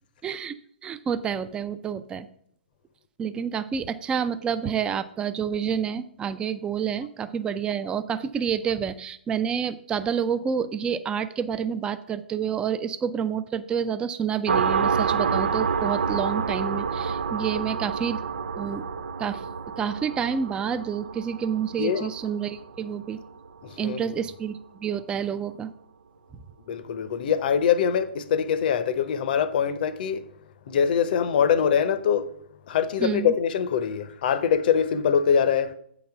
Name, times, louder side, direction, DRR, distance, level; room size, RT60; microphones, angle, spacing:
voice 1, 0.2-0.5 0.8-2.3 3.2-18.2 18.6-18.9 19.2-19.5 19.8-23.2 23.8-25.7 33.0-33.3, right 7 dB, 15° right, 0.4 m, -28 dB
sound 1, 14.5-23.7, right 6 dB, 80° right, 0.4 m, -28 dB
voice 2, 23.6-24.1 26.7-30.2 30.7-32.3 32.7-35.7, left 7 dB, 55° left, 0.7 m, -23 dB
8.3 x 4.1 x 5.9 m
hypercardioid pair, 130°, 6 cm